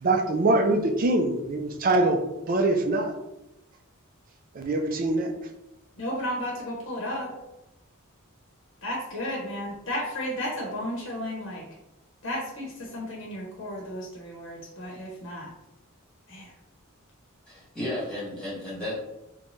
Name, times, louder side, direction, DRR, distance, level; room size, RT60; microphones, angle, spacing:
voice 1, 0.0-2.2 2.5-3.1 4.6-5.3, right 2 dB, 40° right, 4 dB, 0.4 m, -23 dB
voice 2, 5.9-7.3 8.8-11.6 12.2-15.5 16.3-16.5, equal, 60° left, -2 dB, 0.8 m, -33 dB
voice 3, 17.5-18.9, left 1 dB, 5° left, -7 dB, 1.5 m, -33 dB
3.9 x 2.2 x 3.0 m, 0.95 s
head